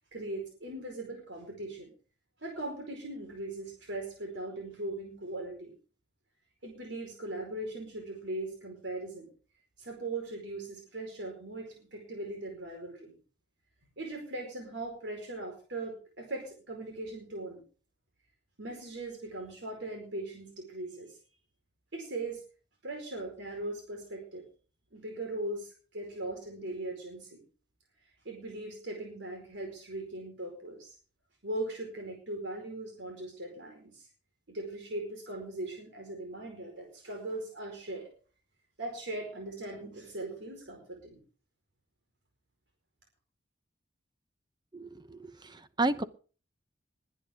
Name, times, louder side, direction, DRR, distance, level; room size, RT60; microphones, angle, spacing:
voice 1, 0.1-1.9 2.4-5.7 6.6-9.3 9.8-13.2 14.0-17.6 18.6-21.2 21.9-22.4 22.8-24.4 24.9-27.4 28.2-30.9 31.4-34.1 34.5-38.1 38.8-41.2, right 2 dB, 80° right, 1 dB, 4.8 m, -39 dB
voice 2, 44.7-45.2 45.8-46.0, right 2 dB, 25° right, 13 dB, 0.9 m, -30 dB
21.0 x 10.0 x 3.7 m, 0.38 s
head